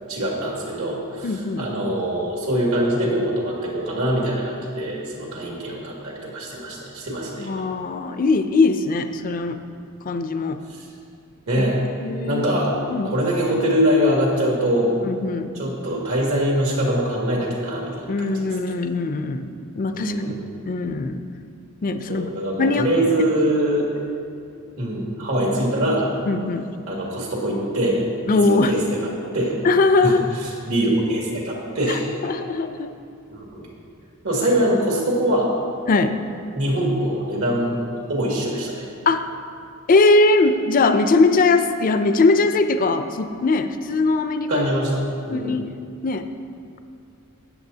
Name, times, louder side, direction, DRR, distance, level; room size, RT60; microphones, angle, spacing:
voice 1, 0.1-7.5 11.5-11.8 12.2-14.9 15.5-18.7 19.9-20.4 22.1-23.9 24.8-26.1 26.9-29.6 30.0-30.2 30.7-32.1 33.4-33.7 34.2-35.5 36.5-38.9 44.5-45.6, equal, 75° right, -3 dB, 2.1 m, -23 dB
voice 2, 1.2-1.7 7.4-9.6 10.1-10.6 11.6-11.7 12.0-12.5 12.9-13.1 15.0-15.5 18.1-20.4 20.7-21.2 21.8-22.3 22.6-22.9 26.3-26.7 28.3-28.7 29.6-30.2 31.9-32.9 35.9-36.1 39.1-39.2 39.9-44.7 45.3-45.7 46.0-46.3, left 3 dB, 40° left, 9 dB, 0.4 m, -20 dB
13.0 x 9.0 x 2.8 m, 2.4 s
head